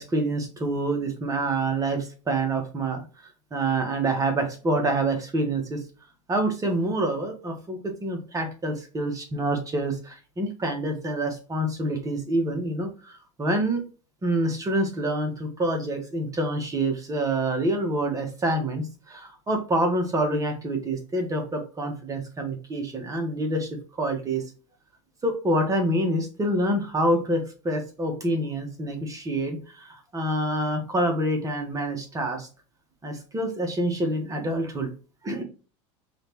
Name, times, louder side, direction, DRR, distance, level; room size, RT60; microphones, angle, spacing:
voice 1, 0.0-3.0 3.5-5.8 6.3-13.8 14.2-23.7 24.0-24.4 25.2-32.5 33.0-34.9 35.2-35.4, right 1 dB, 20° right, 4 dB, 1.4 m, -27 dB
5.1 x 3.3 x 3.1 m, 0.35 s
supercardioid pair, 110°, 16 cm